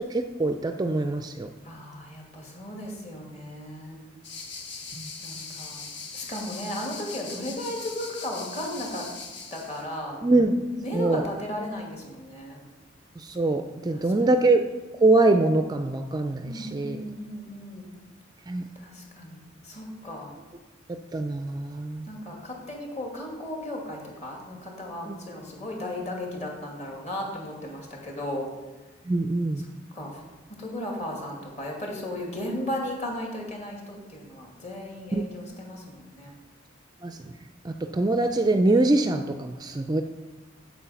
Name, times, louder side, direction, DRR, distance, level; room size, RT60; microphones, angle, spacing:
voice 1, 0.0-1.5 5.0-5.1 10.2-10.6 10.9-11.2 13.2-14.6 14.9-17.0 18.5-18.6 21.1-22.1 25.1-25.2 29.1-29.6 35.1-35.2 37.0-37.2 37.6-40.0, right 2 dB, 20° right, 7 dB, 0.4 m, -23 dB
voice 2, 1.6-4.0 5.2-5.8 6.1-9.1 9.5-10.2 10.8-12.6 13.9-14.4 16.4-17.9 18.8-20.3 22.1-28.5 29.6-29.7 29.9-30.2 30.6-36.3, left 1 dB, 35° left, -1 dB, 2.3 m, -35 dB
sound 1, 4.2-9.8, left 4 dB, 60° left, 1.6 m, -40 dB
8.7 x 7.5 x 5.7 m, 1.2 s
head